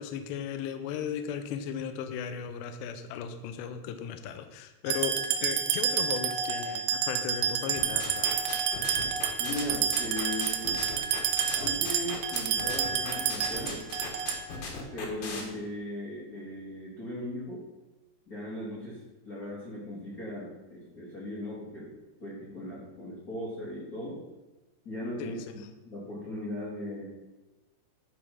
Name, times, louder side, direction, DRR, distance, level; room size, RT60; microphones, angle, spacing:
voice 1, 0.0-8.6 25.2-25.4, left 8 dB, 80° left, 8 dB, 2.7 m, -36 dB
sound 1, 4.9-14.6, right 7 dB, 80° right, 2.5 m, -29 dB
sound 2, 7.8-15.4, left 4 dB, 60° left, 2.7 m, -38 dB
voice 2, 9.4-10.8 11.5-13.8 14.7-17.6 18.3-21.9 22.2-24.2 24.8-27.1, left 1 dB, 40° left, -7 dB, 1.3 m, -38 dB
11.0 x 5.0 x 5.8 m, 1.1 s
omnidirectional pair, 5.4 m